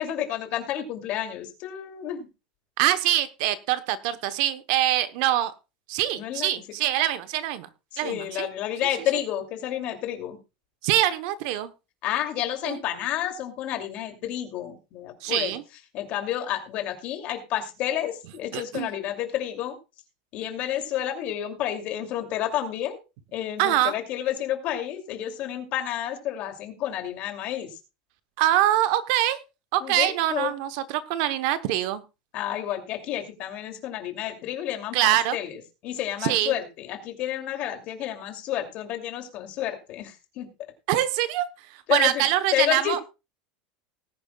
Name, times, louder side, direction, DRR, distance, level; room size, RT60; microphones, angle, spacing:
voice 1, 0.0-2.3 6.2-6.5 7.9-10.4 12.0-15.5 15.9-19.8 20.3-23.0 23.3-27.8 29.8-30.5 32.3-40.5 41.9-43.0, left 11 dB, 35° left, 6 dB, 2.7 m, -30 dB
voice 2, 2.8-5.5 5.9-7.7 8.0-8.5 10.8-11.7 12.6-12.8 15.2-15.6 18.5-18.9 23.6-23.9 28.4-29.4 29.7-32.0 34.9-35.4 36.2-36.5 40.9-41.5 41.7-43.0, right 13 dB, 50° right, 13 dB, 1.0 m, -24 dB
19.0 x 10.5 x 2.3 m, 0.28 s
supercardioid pair, 180°, 4 cm